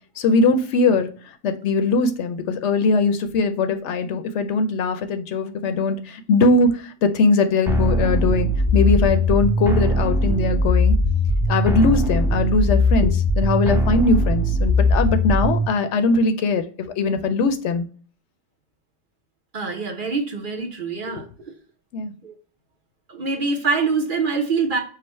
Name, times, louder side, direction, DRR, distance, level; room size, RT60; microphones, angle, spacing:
voice 1, 0.2-1.1 1.4-10.9 11.5-17.9 21.1-21.2 21.9-22.1, left 3 dB, 75° left, 8 dB, 0.9 m, -21 dB
sound 1, 7.7-15.7, left 1 dB, 5° right, 0.3 m, -20 dB
voice 2, 19.5-21.2 22.2-22.3 23.1-24.8, right 4 dB, 50° right, 3 dB, 0.9 m, -24 dB
4.9 x 2.1 x 4.3 m, 0.42 s
omnidirectional pair, 1.2 m